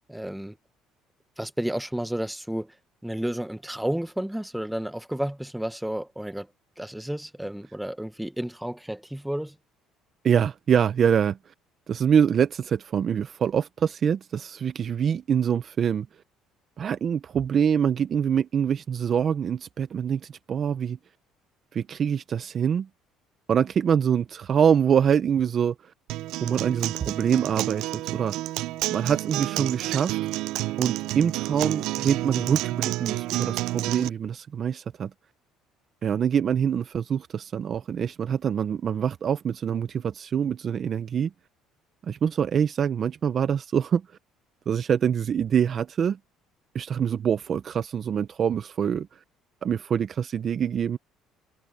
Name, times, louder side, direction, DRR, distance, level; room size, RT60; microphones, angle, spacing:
voice 1, 0.1-0.5 1.4-2.7 3.0-6.5 6.8-9.5, right 1 dB, 5° right, 0.9 m, -31 dB
voice 2, 10.2-11.4 11.9-16.1 16.8-21.0 21.7-22.9 23.5-25.9 26.4-28.3 28.9-30.2 30.8-35.1 36.0-41.3 42.0-44.0 44.7-46.2 46.7-49.2 49.6-51.0, right 8 dB, 40° right, 0.7 m, -25 dB
Acoustic guitar, 26.1-34.1, right 17 dB, 75° right, 0.4 m, -30 dB
cardioid pair, 125°, 0 cm